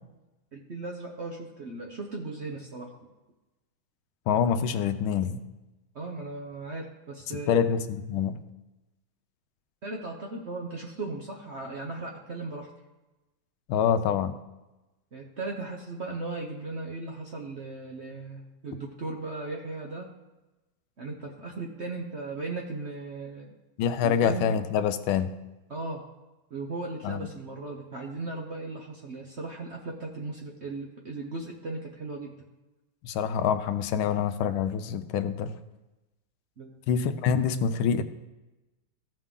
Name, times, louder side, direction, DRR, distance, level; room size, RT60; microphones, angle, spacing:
voice 1, 0.5-2.9 5.9-7.7 9.8-12.7 15.1-20.1 21.0-23.5 24.0-24.5 25.7-26.0 26.5-32.4 36.6-36.8, right 3 dB, 50° right, 0 dB, 0.8 m, -37 dB
voice 2, 4.3-5.4 7.5-8.4 13.7-14.4 23.8-25.4 27.0-27.3 33.0-35.5 36.9-38.0, left 7 dB, 90° left, 10 dB, 1.5 m, -26 dB
15.5 x 5.3 x 3.7 m, 1.1 s
omnidirectional pair, 2.2 m